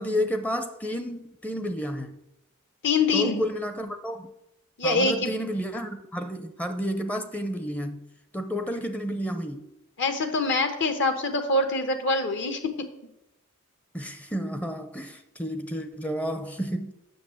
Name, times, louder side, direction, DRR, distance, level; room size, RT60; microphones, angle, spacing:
voice 1, 0.0-2.1 3.1-4.3 4.8-8.0 8.3-9.6 13.9-16.9, equal, 5° left, 0.5 m, -31 dB
voice 2, 2.8-3.4 4.8-5.3 10.0-12.9, left 3 dB, 60° left, 1.0 m, -24 dB
7.7 x 6.4 x 7.5 m
head